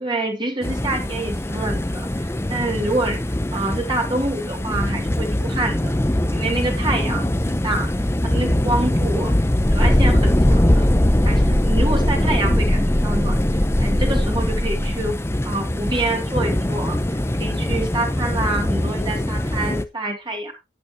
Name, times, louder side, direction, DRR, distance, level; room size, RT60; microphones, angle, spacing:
voice 1, 0.0-3.2 3.5-5.9 6.3-7.9 8.2-9.3 9.7-10.9 11.2-13.3 13.8-15.2 15.4-20.6, right 2 dB, 25° right, 2 dB, 2.5 m, -26 dB
sound 1, 0.6-19.8, left 1 dB, 15° left, 0.8 m, -21 dB
11.5 x 9.3 x 2.9 m, 0.23 s
head